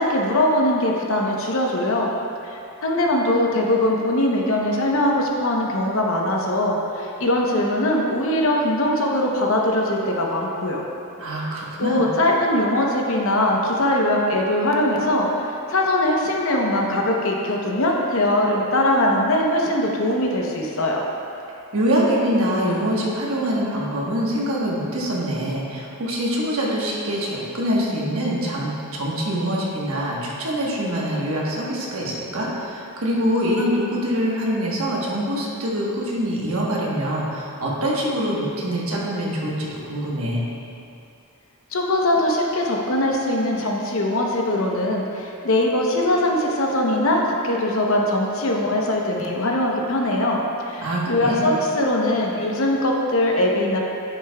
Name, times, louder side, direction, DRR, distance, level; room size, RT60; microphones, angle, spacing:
voice 1, 0.0-2.1 2.4-10.8 11.8-21.0 41.7-50.4 50.7-53.8, left 1 dB, 60° left, -1 dB, 0.8 m, -21 dB
voice 2, 11.2-12.0 21.7-40.5 50.8-51.4, equal, 70° right, -4 dB, 1.2 m, -24 dB
9.3 x 6.6 x 2.3 m, 2.7 s
head